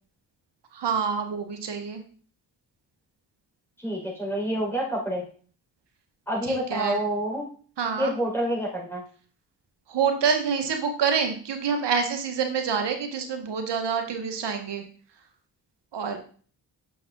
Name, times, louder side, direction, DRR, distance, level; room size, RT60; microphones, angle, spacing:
voice 1, 0.7-2.0 6.4-7.0 7.8-8.1 9.9-14.8 15.9-16.2, right 6 dB, 65° right, 5 dB, 1.7 m, -27 dB
voice 2, 3.8-5.3 6.3-7.5 8.0-9.0, right 1 dB, 5° left, -3 dB, 4.3 m, -28 dB
6.7 x 6.5 x 4.0 m, 0.43 s
supercardioid pair, 50°, 44 cm